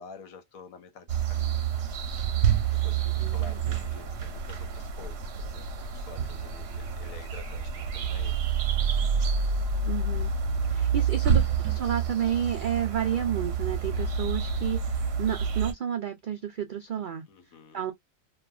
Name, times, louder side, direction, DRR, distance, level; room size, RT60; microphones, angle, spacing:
voice 1, 0.0-1.6 2.7-8.3 10.8-11.2 17.3-17.8, left 5 dB, 85° left, 1.2 m, -49 dB
sound 1, 1.1-15.7, right 6 dB, 60° right, 0.8 m, -28 dB
voice 2, 9.8-10.3 10.7-17.2 17.7-17.9, right 9 dB, 85° right, 0.4 m, -31 dB
2.9 x 2.3 x 2.3 m
omnidirectional pair, 1.4 m